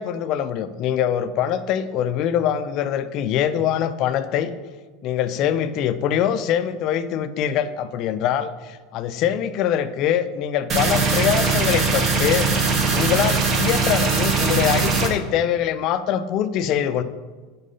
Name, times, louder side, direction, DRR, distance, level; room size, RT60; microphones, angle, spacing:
voice 1, 0.0-4.5 5.0-12.5 12.9-17.0, left 9 dB, 45° left, 12 dB, 0.3 m, -23 dB
sound 1, 10.7-15.1, right 4 dB, 30° right, 0.7 m, -20 dB
5.2 x 3.7 x 5.4 m, 1.3 s
supercardioid pair, 150°, 0 cm